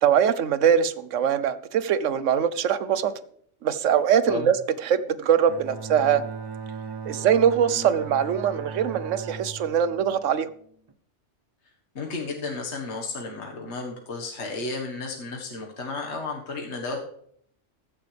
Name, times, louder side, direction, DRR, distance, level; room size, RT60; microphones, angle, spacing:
voice 1, 0.0-3.1 3.6-4.6 4.8-6.3 7.1-10.5, right 8 dB, 85° right, 15 dB, 1.1 m, -22 dB
Bowed string instrument, 5.5-10.9, right 5 dB, 30° right, 0.5 m, -38 dB
voice 2, 7.7-8.1 12.0-17.0, left 3 dB, 65° left, 0 dB, 1.8 m, -33 dB
15.0 x 11.0 x 3.4 m, 0.64 s
omnidirectional pair, 1.3 m